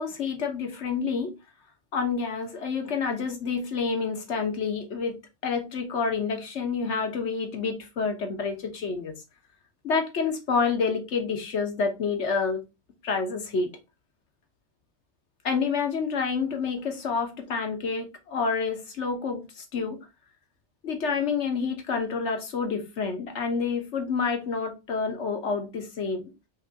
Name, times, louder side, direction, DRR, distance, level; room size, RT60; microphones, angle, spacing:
voice 1, 0.0-1.3 1.9-5.2 5.4-9.1 9.8-12.6 13.0-13.7 15.4-20.0 20.8-26.3, left 5 dB, 60° left, 1.4 m, -28 dB
5.5 x 3.3 x 2.8 m
omnidirectional pair, 1.3 m